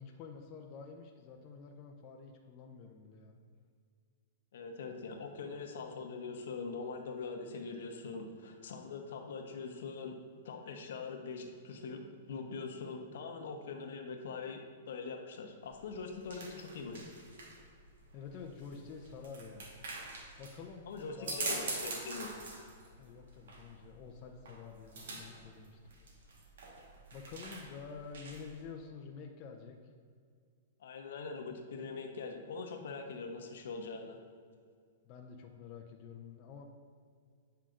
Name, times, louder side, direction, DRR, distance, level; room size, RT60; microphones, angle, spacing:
voice 1, 0.0-3.4 18.1-19.7 20.4-21.5 23.0-25.8 27.1-29.8 35.0-36.6, left 5 dB, 35° left, 1 dB, 0.6 m, -49 dB
voice 2, 4.5-10.2 10.4-12.0 12.3-17.0 20.9-22.3 30.8-34.2, left 4 dB, 75° left, 4 dB, 0.9 m, -43 dB
sound 1, 15.6-28.6, right 3 dB, 80° right, 1.3 m, -45 dB
9.1 x 5.6 x 2.5 m, 2.1 s
hypercardioid pair, 140°, 0 cm